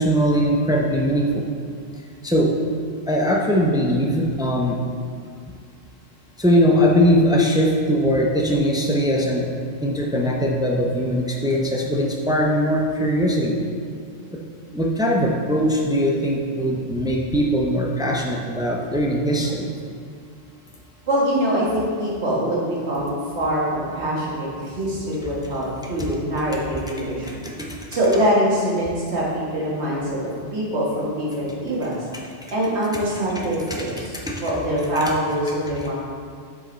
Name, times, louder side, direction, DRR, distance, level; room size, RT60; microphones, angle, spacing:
voice 1, 0.0-1.4 2.2-2.5 3.1-4.8 6.4-9.5 9.8-13.6 14.3-14.4 14.7-19.7 27.2-27.7 34.3-34.4, equal, 5° right, -1 dB, 0.4 m, -20 dB
voice 2, 21.1-27.5 27.9-30.2 30.5-32.1 32.5-35.9, equal, 70° right, -6 dB, 1.8 m, -24 dB
7.5 x 4.9 x 3.9 m, 2.1 s
omnidirectional pair, 1.2 m